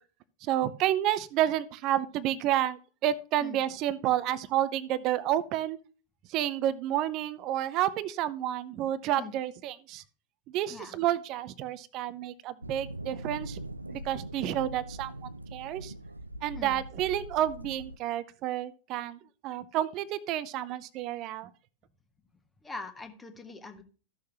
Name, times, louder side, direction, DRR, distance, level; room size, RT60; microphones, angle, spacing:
voice 1, 0.4-5.8 6.3-10.0 10.5-13.6 13.9-15.9 16.4-21.5, right 12 dB, 40° right, 16 dB, 0.6 m, -30 dB
sound 1, 12.6-18.0, right 1 dB, 85° right, 0.4 m, -42 dB
voice 2, 22.6-23.8, left 3 dB, 15° left, 6 dB, 1.4 m, -42 dB
14.0 x 6.5 x 2.9 m, 0.37 s
figure-of-eight pair, 90°, 0 cm